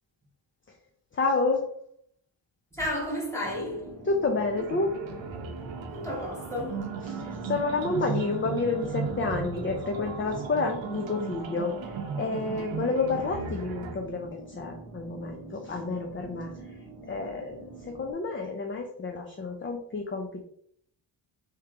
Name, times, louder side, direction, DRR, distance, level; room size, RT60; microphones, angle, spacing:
voice 1, 1.1-1.7 4.0-4.9 7.0-16.8 17.1-20.4, left 3 dB, 25° left, 0.5 m, -30 dB
voice 2, 2.7-4.0 5.9-6.9, left 1 dB, 5° left, 1.8 m, -32 dB
sound 1, 3.4-18.1, right 2 dB, 45° left, 1.8 m, -45 dB
sound 2, 4.6-14.0, right 6 dB, 70° right, 0.8 m, -36 dB
3.7 x 3.0 x 4.5 m
wide cardioid pair, 125°, 47 cm